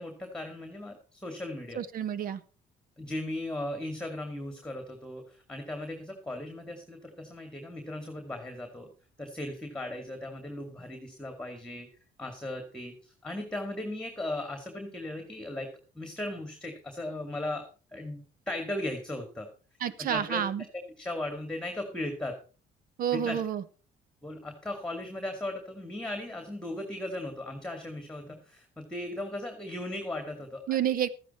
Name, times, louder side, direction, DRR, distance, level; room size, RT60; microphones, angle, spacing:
voice 1, 0.0-1.8 3.0-8.9 9.2-11.9 12.2-15.7 15.9-19.5 20.0-20.4 21.0-22.4 23.1-23.4 24.2-30.9, left 1 dB, 5° left, 5 dB, 2.2 m, -37 dB
voice 2, 1.8-2.4 19.8-20.6 23.0-23.6 30.7-31.1, right 9 dB, 55° right, 16 dB, 1.0 m, -29 dB
13.5 x 10.0 x 4.3 m, 0.36 s
cardioid pair, 110°, 17 cm